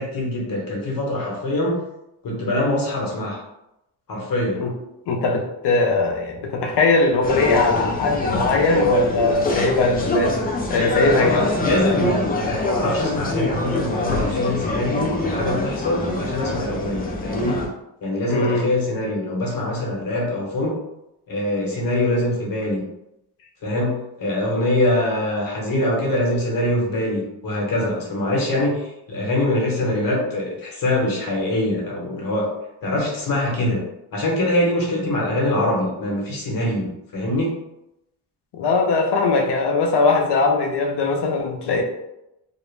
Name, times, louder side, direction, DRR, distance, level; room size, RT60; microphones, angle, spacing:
voice 1, 0.0-1.8 2.2-3.4 4.1-4.6 11.1-17.6 18.0-20.8 21.3-22.8 23.6-32.5 32.8-33.8 34.1-37.6, left 1 dB, 50° left, -2 dB, 0.9 m, -23 dB
voice 2, 5.1-10.4 10.7-11.5 18.3-18.7 38.5-41.8, left 3 dB, 65° left, 2 dB, 0.6 m, -20 dB
sound 1, 7.2-17.7, left 2 dB, 25° left, 0.3 m, -25 dB
2.4 x 2.0 x 3.1 m, 0.89 s
cardioid pair, 125°, 43 cm